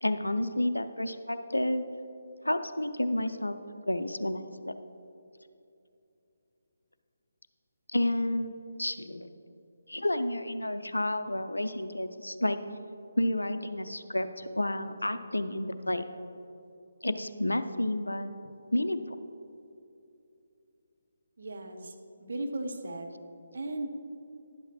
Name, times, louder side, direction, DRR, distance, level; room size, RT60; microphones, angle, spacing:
voice 1, 0.0-1.9 2.4-3.6 3.9-4.7 7.9-9.3 9.9-12.6 13.2-16.0 17.0-18.3 18.7-19.2, left 1 dB, 75° left, 10 dB, 0.5 m, -30 dB
voice 2, 21.4-21.9 22.3-23.1 23.5-23.9, right 2 dB, 55° right, 4 dB, 0.8 m, -36 dB
11.0 x 8.3 x 3.0 m, 2.7 s
figure-of-eight pair, 145°, 0 cm